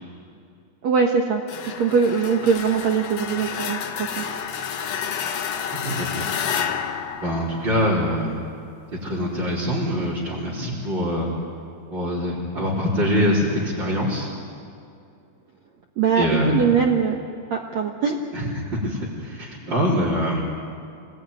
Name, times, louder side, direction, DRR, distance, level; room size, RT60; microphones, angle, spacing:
voice 1, 0.8-4.2 16.0-17.2 17.5-18.2, right 6 dB, 70° right, 2 dB, 1.6 m, -22 dB
sound 1, 1.5-8.2, left 7 dB, 90° left, 1.4 m, -30 dB
voice 2, 5.7-6.3 7.1-8.4 9.0-11.3 11.9-14.3 16.1-16.6 18.3-20.4, equal, 25° right, -8 dB, 4.2 m, -24 dB
27.5 x 19.5 x 9.6 m, 2.5 s
omnidirectional pair, 5.1 m